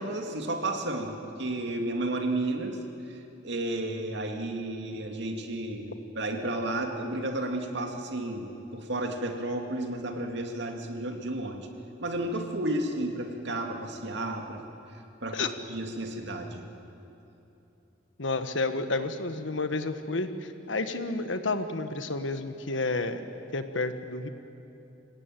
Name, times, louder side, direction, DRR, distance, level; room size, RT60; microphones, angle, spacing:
voice 1, 0.0-2.8 3.1-11.7 12.0-14.6 14.9-16.6, right 1 dB, 65° right, 3 dB, 2.4 m, -32 dB
voice 2, 18.2-24.3, left 3 dB, 85° left, 9 dB, 1.4 m, -31 dB
26.5 x 16.5 x 9.3 m, 2.9 s
head